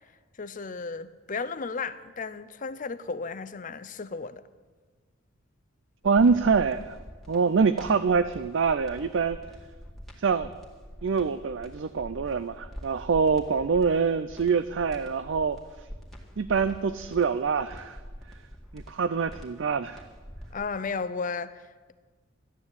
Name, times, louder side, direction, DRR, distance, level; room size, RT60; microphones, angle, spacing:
voice 1, 0.4-4.4 20.5-21.9, left 4 dB, 40° left, 0.6 m, -34 dB
sound 1, 6.0-20.5, equal, ahead, 2.0 m, -45 dB
voice 2, 6.0-7.0 7.3-9.4 10.2-10.5 11.0-15.6 16.4-18.0 18.7-20.0, right 5 dB, 60° right, 0.4 m, -25 dB
13.5 x 9.7 x 8.2 m
head